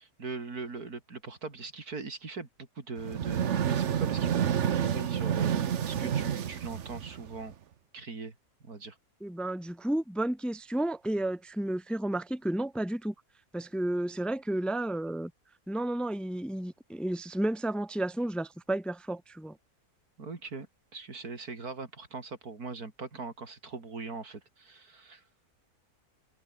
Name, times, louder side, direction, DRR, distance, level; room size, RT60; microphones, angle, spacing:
voice 1, 0.0-7.5 7.9-8.4 8.6-9.0 20.2-20.7 20.9-25.2, right 4 dB, 70° right, 3.6 m, -41 dB
sound 1, 3.0-7.5, right 9 dB, 55° right, 1.1 m, -29 dB
voice 2, 9.2-13.1 13.5-15.3 15.7-19.6, right 1 dB, ahead, 1.3 m, -32 dB
omnidirectional pair, 1.6 m